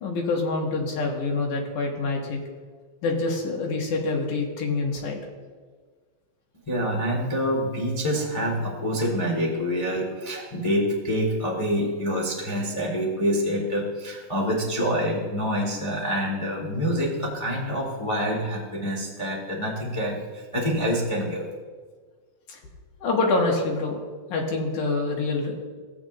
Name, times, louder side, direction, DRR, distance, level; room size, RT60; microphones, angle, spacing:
voice 1, 0.0-2.4 3.0-5.2 22.5-22.6 23.0-24.0 24.3-25.6, left 3 dB, 85° left, 0 dB, 2.9 m, -26 dB
voice 2, 6.7-21.5, equal, 25° left, -3 dB, 0.7 m, -26 dB
15.0 x 8.9 x 2.5 m, 1.5 s
omnidirectional pair, 3.5 m